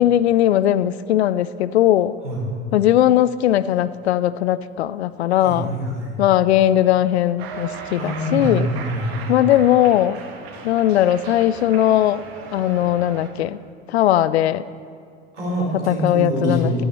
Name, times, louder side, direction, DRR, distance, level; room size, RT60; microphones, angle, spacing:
voice 1, 0.0-2.1 2.7-5.7 6.2-8.7 9.3-10.2 10.6-12.2 12.5-13.6 13.9-14.6 15.9-16.8, left 12 dB, 70° left, 17 dB, 0.5 m, -18 dB
voice 2, 5.4-6.2 7.9-9.4 15.3-16.8, right 1 dB, 80° right, -4 dB, 3.9 m, -25 dB
Cheering, 7.4-13.3, right 5 dB, 60° right, 1.5 m, -37 dB
14.5 x 11.0 x 4.1 m, 2.2 s
figure-of-eight pair, 70°, 35 cm